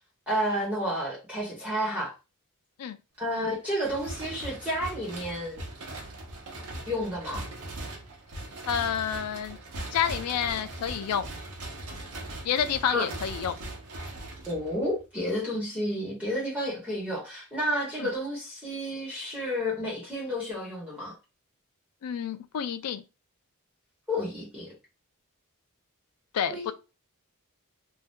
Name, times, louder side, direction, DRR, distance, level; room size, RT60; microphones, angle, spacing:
voice 1, 0.3-2.1 3.2-5.6 6.9-7.4 12.8-13.1 14.5-21.1 24.1-24.7 26.5-26.7, equal, 5° right, 1.0 m, -31 dB
sound 1, 3.8-15.0, right 1 dB, 80° right, 0.9 m, -40 dB
voice 2, 8.7-9.6 9.9-11.3 12.4-13.6 18.0-18.1 22.0-23.0 26.3-26.7, left 8 dB, 85° left, 0.4 m, -29 dB
2.6 x 2.1 x 3.5 m
head